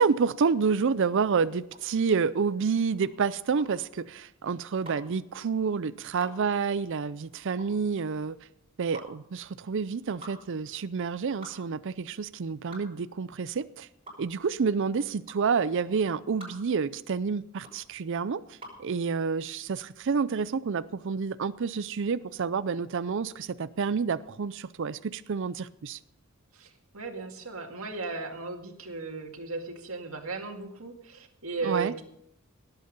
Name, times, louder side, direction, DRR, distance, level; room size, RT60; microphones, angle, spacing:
voice 1, 0.0-8.4 8.8-13.9 14.2-26.0 31.6-31.9, right 5 dB, 60° right, 15 dB, 0.5 m, -29 dB
sound 1, 1.6-18.9, right 1 dB, 30° right, 6.6 m, -49 dB
voice 2, 26.5-32.0, right 4 dB, 80° right, 3 dB, 2.1 m, -36 dB
18.0 x 8.2 x 5.3 m, 0.76 s
head